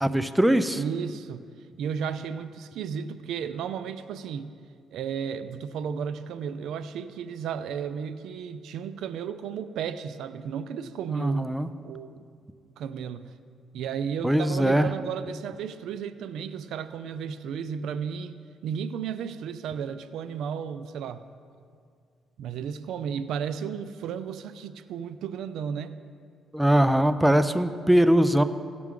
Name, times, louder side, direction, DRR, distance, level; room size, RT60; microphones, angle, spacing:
voice 1, 0.0-0.8 11.1-11.7 14.2-14.9 26.5-28.4, right 1 dB, 5° right, 11 dB, 0.4 m, -21 dB
voice 2, 0.7-1.4 1.8-4.5 4.9-11.6 11.8-12.2 12.8-13.3 13.7-21.2 22.4-26.0, right 7 dB, 80° right, 12 dB, 0.4 m, -33 dB
16.5 x 6.0 x 3.7 m, 2.2 s
cardioid pair, 90°, 0 cm